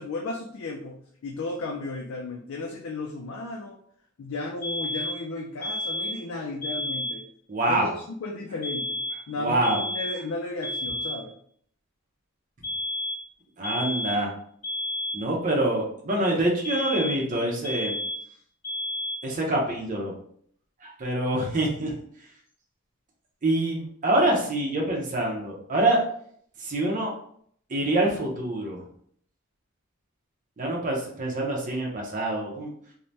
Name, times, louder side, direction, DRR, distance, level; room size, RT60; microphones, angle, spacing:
voice 1, 0.0-3.8 4.2-7.3 7.7-9.0 9.3-11.3, left 2 dB, 80° left, 0 dB, 0.4 m, -34 dB
sound 1, 4.6-5.3 5.6-6.3 6.6-7.3 8.6-9.3 9.6-10.3 10.6-11.3 12.6-13.3 13.6-14.3 14.6-15.3 16.6-17.3 17.6-18.3 18.6-19.3, left 1 dB, 35° left, 1.4 m, -31 dB
voice 2, 7.5-7.9 9.4-9.8 13.6-14.3 15.1-17.9 19.2-20.1 21.0-21.9 23.4-26.0 26.6-27.1 27.7-28.8 30.6-32.7, right 1 dB, 40° right, -1 dB, 0.6 m, -25 dB
3.2 x 2.1 x 2.6 m, 0.62 s
head